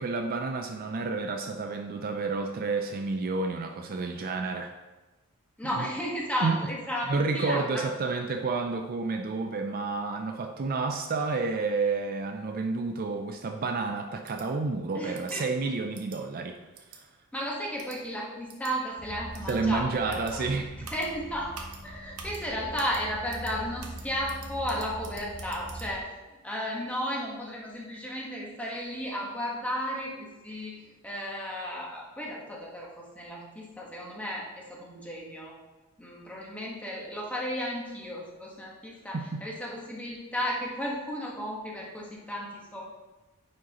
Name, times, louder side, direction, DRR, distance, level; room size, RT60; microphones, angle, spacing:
voice 1, 0.0-4.7 5.6-5.9 6.4-6.6 7.1-16.6 16.9-17.0 19.5-20.7 39.1-39.4, right 3 dB, 40° right, 5 dB, 0.4 m, -30 dB
voice 2, 5.6-7.8 14.9-15.5 17.3-20.5 20.9-21.5 21.8-26.1 26.4-35.5 36.0-42.8, equal, 5° left, -4 dB, 1.3 m, -34 dB
sound 1, 14.2-14.5 15.1-15.4 15.9-16.2 16.7-17.0 17.8-18.0 18.5-18.7 19.3-19.6 20.1-20.3 20.8-21.1 21.5-21.8 22.2-22.4 22.8-23.0 23.3-23.5 23.8-25.9, right 6 dB, 90° right, 1.0 m, -46 dB
sound 2, 19.0-26.0, right 1 dB, 35° left, 1.0 m, -42 dB
9.5 x 5.1 x 2.9 m, 1.2 s
head